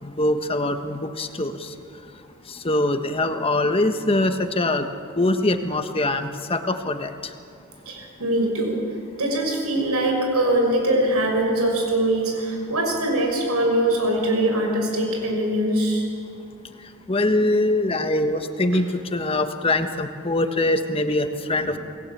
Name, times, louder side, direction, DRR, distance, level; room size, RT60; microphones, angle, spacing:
voice 1, 0.0-1.7 2.5-4.9 5.2-7.1 17.1-18.9 19.1-21.8, left 2 dB, 25° left, 7 dB, 1.3 m, -23 dB
voice 2, 7.9-8.8 9.2-16.1 21.6-21.8, right 1 dB, 85° right, 2 dB, 6.0 m, -22 dB
27.5 x 19.5 x 8.6 m, 2.4 s
head